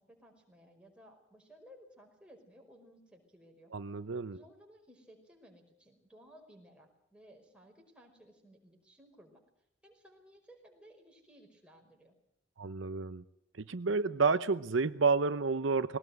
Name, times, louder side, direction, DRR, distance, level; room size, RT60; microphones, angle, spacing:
voice 1, 0.0-3.7 4.3-9.4 9.8-12.2, equal, 5° right, 0 dB, 5.3 m, -59 dB
voice 2, 3.7-4.4 12.6-13.2 13.6-16.0, right 4 dB, 75° right, 12 dB, 0.8 m, -30 dB
21.0 x 18.5 x 8.0 m, 0.78 s
head